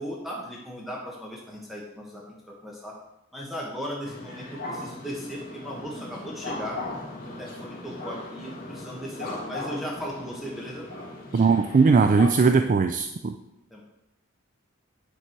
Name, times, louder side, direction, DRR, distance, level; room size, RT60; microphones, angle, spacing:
voice 1, 0.0-3.0 3.3-6.8 7.2-10.9 13.7-13.8, equal, ahead, -3 dB, 1.4 m, -37 dB
sound 1, 4.0-12.3, left 2 dB, 45° left, 1.8 m, -38 dB
voice 2, 11.3-13.3, right 4 dB, 40° right, 7 dB, 0.3 m, -19 dB
8.4 x 6.7 x 4.5 m, 0.87 s
head